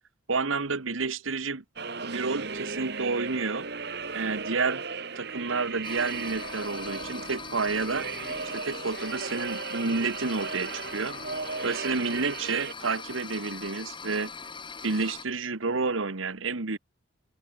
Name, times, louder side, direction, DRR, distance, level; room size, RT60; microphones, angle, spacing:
voice 1, 0.3-1.6 2.0-3.7 4.1-4.8 5.1-8.1 8.5-11.2 11.6-14.3 14.8-16.8, right 4 dB, 80° right, 1.4 m, -30 dB
sound 1, 1.8-12.7, right 5 dB, 55° right, 1.9 m, -36 dB
sound 2, 5.8-15.3, left 5 dB, 25° left, 3.7 m, -41 dB
head